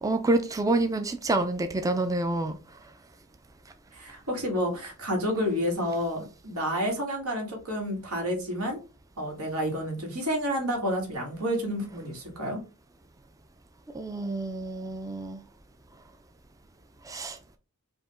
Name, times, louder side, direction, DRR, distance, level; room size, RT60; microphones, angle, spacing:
voice 1, 0.0-2.6 13.9-15.4 17.0-17.4, right 2 dB, 15° right, 0.4 m, -27 dB
voice 2, 3.9-8.8 9.2-12.6, equal, 90° right, 2.2 m, -30 dB
5.0 x 2.8 x 3.7 m
head